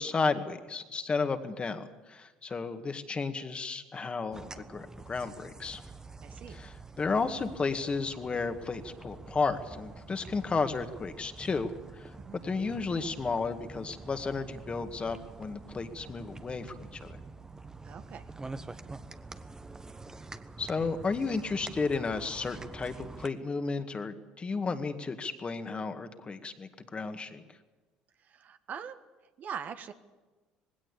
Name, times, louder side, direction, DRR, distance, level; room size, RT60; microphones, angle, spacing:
voice 1, 0.0-5.8 6.5-12.1 12.4-17.2 20.6-27.4, left 4 dB, 30° left, 8 dB, 2.0 m, -33 dB
sound 1, 4.3-23.3, right 3 dB, 15° right, 1.2 m, -46 dB
voice 2, 6.2-6.6 12.2-12.4 17.8-18.2 28.2-29.0 29.4-29.9, right 7 dB, 50° right, 9 dB, 1.4 m, -42 dB
19.5 x 17.0 x 8.5 m, 1.2 s
hypercardioid pair, 65°, 4 cm